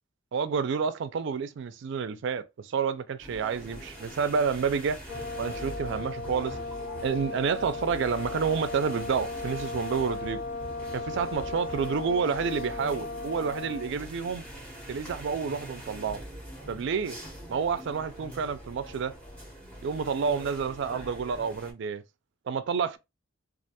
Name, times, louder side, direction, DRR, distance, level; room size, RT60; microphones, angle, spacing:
voice 1, 0.3-5.0 5.4-6.6 7.0-10.4 10.9-14.4 14.9-16.2 16.7-17.2 17.5-19.1 19.8-22.0 22.5-23.0, right 6 dB, 60° right, 0.3 m, -29 dB
sound 1, 3.2-21.7, right 1 dB, 5° left, 0.8 m, -43 dB
Brass instrument, 5.1-14.0, left 3 dB, 75° left, 0.4 m, -37 dB
2.3 x 2.2 x 2.8 m
head